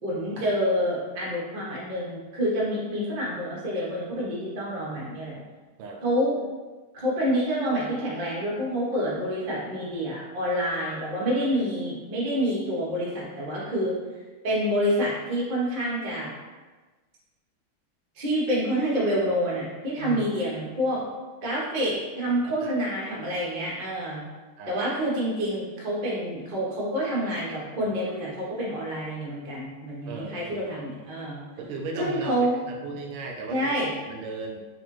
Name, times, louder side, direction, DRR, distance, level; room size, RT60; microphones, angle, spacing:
voice 1, 0.0-5.4 6.0-6.4 6.9-14.0 14.4-16.3 18.2-21.0 21.4-24.2 24.7-31.4 32.0-32.6 33.5-33.9, equal, 60° right, -6 dB, 0.5 m, -27 dB
voice 2, 22.4-22.7 23.0-23.1 24.6-24.8 30.1-30.7 31.6-32.3 32.7-33.7 34.1-34.7, right 3 dB, 85° right, 2 dB, 1.5 m, -36 dB
4.1 x 2.5 x 3.0 m, 1.3 s
omnidirectional pair, 2.4 m